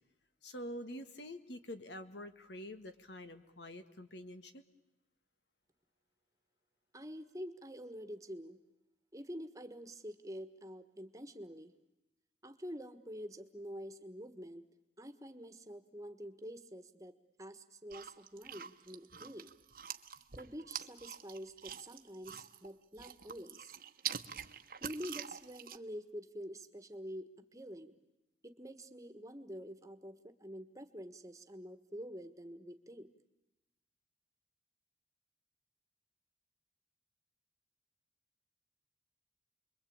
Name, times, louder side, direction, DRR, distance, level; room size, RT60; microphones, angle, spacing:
voice 1, 0.4-4.6, equal, 85° left, 10 dB, 1.8 m, -46 dB
voice 2, 6.9-8.6 9.1-11.7 12.4-14.6 15.0-19.5 20.3-23.8 24.8-27.9 28.4-33.1, equal, 20° right, 9 dB, 1.4 m, -47 dB
sound 1, 17.9-22.7 22.9-25.8, right 9 dB, 50° right, 1.0 m, -45 dB
29.5 x 22.5 x 8.7 m, 0.95 s
head